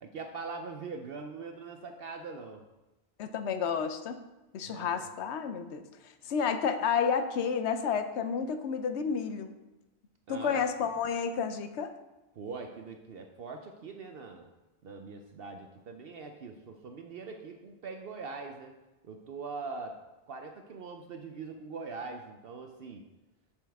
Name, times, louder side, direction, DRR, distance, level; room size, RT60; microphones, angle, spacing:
voice 1, 0.0-2.6 4.7-5.1 6.2-6.3 10.3-10.6 12.4-14.5 14.8-18.7 19.0-20.0 20.3-23.0, right 4 dB, 65° right, 4 dB, 0.8 m, -42 dB
voice 2, 3.2-4.2 4.5-5.8 6.3-9.5 10.3-11.9, left 6 dB, 80° left, 9 dB, 0.9 m, -30 dB
7.5 x 7.1 x 3.4 m, 1.0 s
omnidirectional pair, 1.1 m